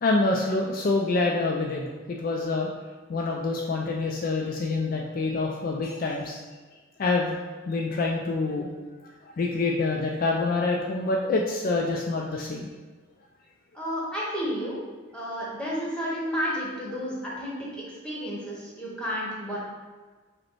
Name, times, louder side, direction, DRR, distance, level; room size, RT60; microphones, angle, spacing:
voice 1, 0.0-2.7 3.1-6.4 7.0-7.4 7.7-8.7 9.3-12.7, left 3 dB, 45° left, 0 dB, 0.3 m, -26 dB
voice 2, 13.7-14.8 15.1-19.6, equal, 5° left, -6 dB, 1.0 m, -31 dB
5.0 x 2.1 x 4.5 m, 1.4 s
head